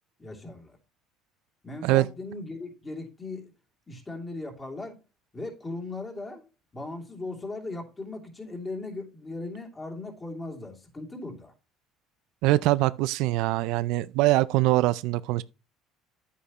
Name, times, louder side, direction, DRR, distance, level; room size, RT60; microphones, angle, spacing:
voice 1, 0.2-0.8 1.6-3.5 3.9-5.0 5.3-6.4 6.7-11.5, left 2 dB, 20° left, 2.8 m, -38 dB
voice 2, 12.4-15.4, right 18 dB, 75° right, 0.4 m, -23 dB
9.8 x 8.4 x 3.0 m
cardioid pair, 105°, 0 cm